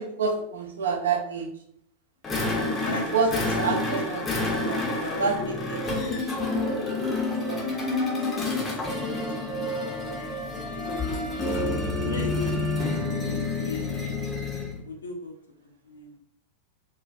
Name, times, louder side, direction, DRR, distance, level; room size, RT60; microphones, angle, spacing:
voice 1, 0.0-1.6 2.4-4.2 4.6-6.2 7.2-7.9, right 5 dB, 65° right, 2 dB, 0.4 m, -29 dB
sound 1, 2.2-14.8, left 2 dB, 20° left, 0.5 m, -29 dB
voice 2, 2.4-3.9 4.6-5.5 6.1-6.4 9.4-9.7 10.7-11.1 12.0-13.0 13.6-14.3 14.8-15.3 15.8-16.2, left 4 dB, 70° left, 3 dB, 0.4 m, -37 dB
Wind instrument woodwind instrument, 6.6-14.2, right 2 dB, 15° right, 0.8 m, -43 dB
2.3 x 2.2 x 2.4 m, 0.70 s
figure-of-eight pair, 90°, 0 cm